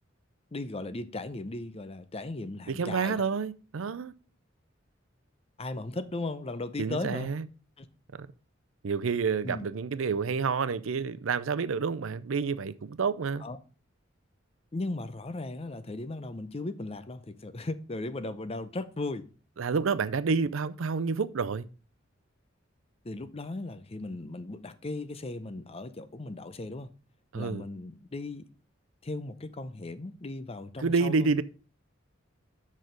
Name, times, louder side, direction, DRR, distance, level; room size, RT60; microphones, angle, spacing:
voice 1, 0.5-3.2 5.6-7.3 7.8-7.9 9.4-9.7 13.4-13.6 14.7-19.3 23.0-26.9 27.4-28.4 29.0-31.3, left 2 dB, 30° left, 0.6 m, -37 dB
voice 2, 2.7-4.1 6.8-7.5 8.1-8.3 8.8-13.5 19.6-21.7 27.3-27.6 30.8-31.4, right 5 dB, 85° right, 0.5 m, -29 dB
6.4 x 6.2 x 5.2 m
head